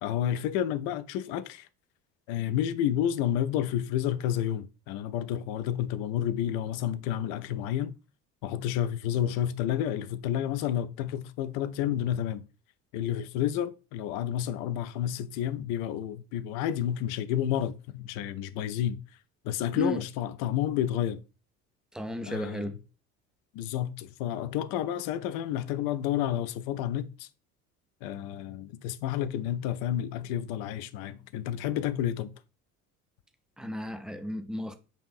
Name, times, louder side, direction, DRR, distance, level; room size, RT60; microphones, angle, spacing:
voice 1, 0.0-1.7 2.3-7.9 8.4-12.4 12.9-19.0 19.4-21.2 22.3-22.7 23.5-27.3 28.0-32.3, left 10 dB, 55° left, 0.5 m, -30 dB
voice 2, 21.9-22.8 33.6-34.7, left 1 dB, ahead, 0.3 m, -34 dB
5.7 x 2.5 x 2.4 m
hypercardioid pair, 60°, 43 cm